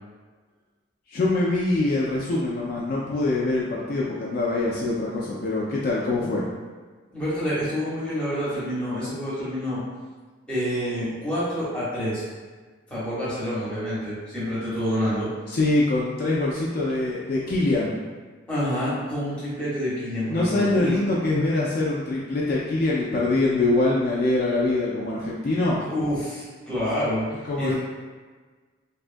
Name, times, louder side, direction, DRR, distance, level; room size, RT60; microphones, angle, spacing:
voice 1, 1.1-6.5 15.5-17.9 20.3-25.8 27.4-27.8, left 2 dB, 45° left, -5 dB, 0.3 m, -24 dB
voice 2, 7.1-9.8 10.5-12.2 12.9-15.3 18.5-20.9 25.8-27.2 27.6-27.8, equal, 5° left, -10 dB, 0.8 m, -27 dB
2.6 x 2.3 x 2.5 m, 1.4 s
head